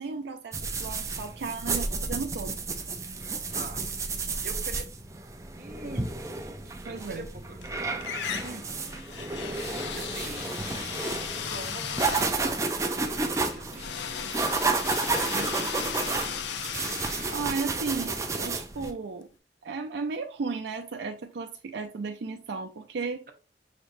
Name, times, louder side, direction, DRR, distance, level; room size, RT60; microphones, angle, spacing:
voice 1, 0.0-2.5 6.8-7.3 15.3-15.5 17.3-19.3 19.6-23.2, right 4 dB, 80° right, 0.4 m, -34 dB
sound 1, 0.5-18.9, right 3 dB, 15° right, 0.4 m, -31 dB
voice 2, 3.5-4.9 5.5-6.1 6.4-7.9 8.3-9.2 9.9-10.5 11.5-14.0 15.0-16.5, right 2 dB, 55° right, 0.8 m, -43 dB
sound 2, 7.1-7.7 8.0-18.9, left 7 dB, 80° left, 0.5 m, -37 dB
5.7 x 3.3 x 2.6 m
head